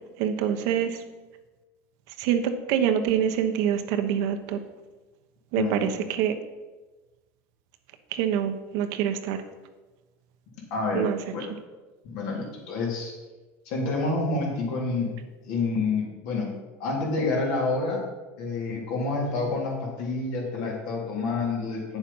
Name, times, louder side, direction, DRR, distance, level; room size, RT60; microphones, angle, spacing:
voice 1, 0.2-1.0 2.2-4.6 5.5-6.3 8.1-9.4 10.9-11.2, right 9 dB, 65° right, 8 dB, 1.0 m, -25 dB
voice 2, 5.5-5.9 10.7-11.4 12.0-13.1 13.7-15.1 15.4-16.5 16.8-18.0 18.4-22.0, left 3 dB, 65° left, -2 dB, 3.6 m, -28 dB
9.2 x 7.1 x 5.5 m, 1.2 s
supercardioid pair, 130°, 7 cm